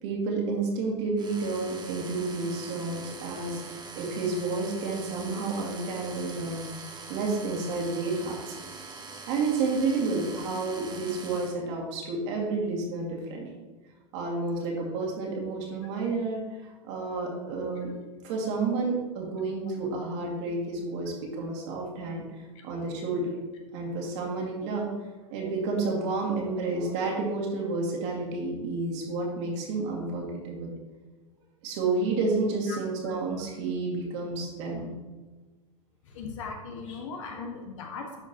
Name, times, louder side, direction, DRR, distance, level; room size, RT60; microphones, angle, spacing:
voice 1, 0.0-6.7 7.1-8.6 9.3-13.5 14.1-17.9 18.2-23.3 23.7-24.9 25.3-30.7 31.6-35.0, right 3 dB, 55° right, -1 dB, 2.2 m, -30 dB
sound 1, 1.2-11.5, right 4 dB, 25° right, 1.2 m, -43 dB
voice 2, 14.4-14.7 21.5-21.6 22.5-22.6 32.7-32.8 36.0-38.2, left 4 dB, 65° left, 2 dB, 1.5 m, -39 dB
11.0 x 5.1 x 2.9 m, 1.3 s
hypercardioid pair, 95°, 17 cm